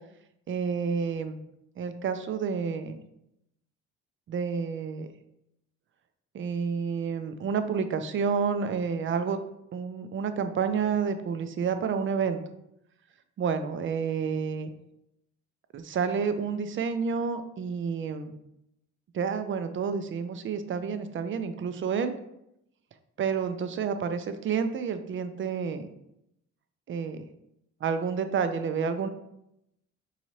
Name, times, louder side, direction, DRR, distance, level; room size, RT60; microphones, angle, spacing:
voice 1, 0.5-1.4 1.8-3.0 4.3-5.1 6.3-9.4 9.7-12.4 13.4-14.7 15.7-18.4 19.1-22.1 23.2-25.9 26.9-27.2 27.8-29.1, right 6 dB, 40° right, 9 dB, 0.4 m, -29 dB
4.7 x 2.7 x 3.1 m, 0.81 s
cardioid pair, 90°, 30 cm